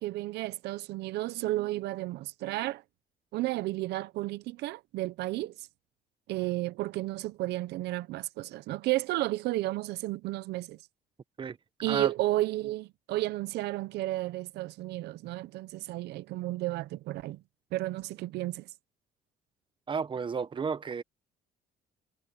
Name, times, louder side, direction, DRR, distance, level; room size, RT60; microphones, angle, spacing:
voice 1, 0.0-2.8 3.3-5.7 6.3-10.8 11.8-17.4 17.7-18.7, right 17 dB, 80° right, 0.7 m, -32 dB
voice 2, 19.9-21.0, right 6 dB, 30° right, 1.0 m, -32 dB
cardioid pair, 110°, 17 cm